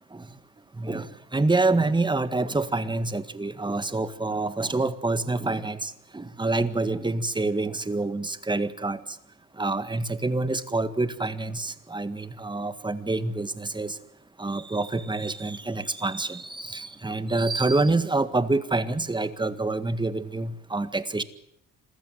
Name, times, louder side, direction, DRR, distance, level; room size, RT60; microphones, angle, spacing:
voice 1, 0.8-9.0 9.6-14.0 14.4-21.2, right 2 dB, 15° right, 13 dB, 1.8 m, -27 dB
27.0 x 15.5 x 9.3 m, 0.73 s
cardioid pair, 90°, 30 cm